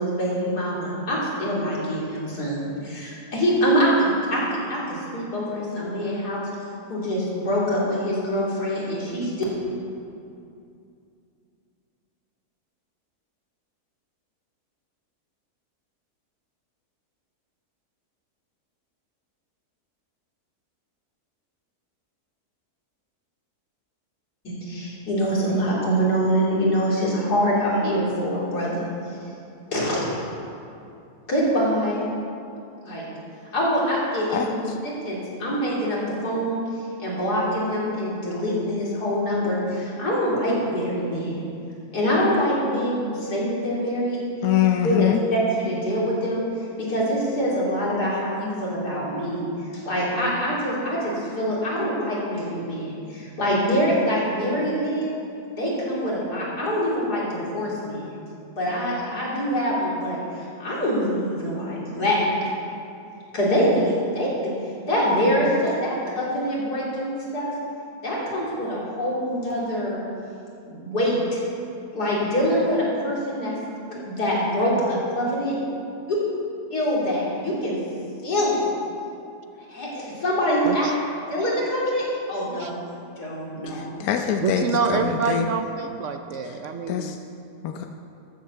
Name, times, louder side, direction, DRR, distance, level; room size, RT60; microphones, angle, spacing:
voice 1, 0.0-6.5 6.9-9.3 24.4-28.8 29.7-30.2 31.3-32.0 32.8-33.1 33.5-34.5 35.0-36.6 37.0-41.4 41.9-44.2 44.8-46.4 46.9-49.4 49.7-55.1 55.6-58.1 58.6-62.5 63.3-64.5 64.9-67.5 68.0-70.0 70.6-71.4 71.9-73.6 73.9-75.5 76.1-76.2 76.7-77.8 78.2-78.6 79.7-80.9 81.3-82.7 83.2-83.8, equal, 90° left, -6 dB, 3.7 m, -24 dB
voice 2, 44.4-45.2 83.7-85.5 86.9-87.2 87.6-87.9, left 10 dB, 70° left, 5 dB, 1.1 m, -24 dB
voice 3, 84.4-87.2, right 5 dB, 60° right, 7 dB, 0.9 m, -27 dB
13.5 x 7.8 x 6.9 m, 2.6 s
omnidirectional pair, 1.7 m